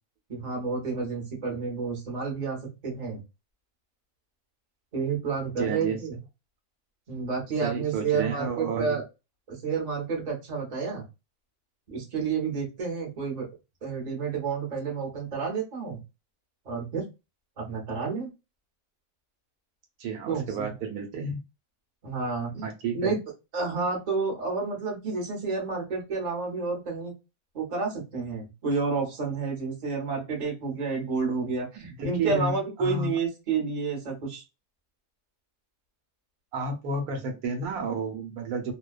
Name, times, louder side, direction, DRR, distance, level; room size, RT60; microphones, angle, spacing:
voice 1, 0.3-3.2 4.9-6.2 7.1-9.0 9.5-11.0 11.9-13.5 13.8-16.0 16.7-17.0 17.6-18.3 20.3-20.7 22.0-22.7 22.9-23.2 23.5-27.1 27.5-34.4, right 4 dB, 35° right, 0 dB, 0.8 m, -30 dB
voice 2, 5.6-6.0 7.6-9.0 20.0-21.4 22.6-23.1 31.8-33.2 36.5-38.7, right 4 dB, 75° right, 4 dB, 1.1 m, -31 dB
2.5 x 2.1 x 2.3 m, 0.26 s
omnidirectional pair, 1.7 m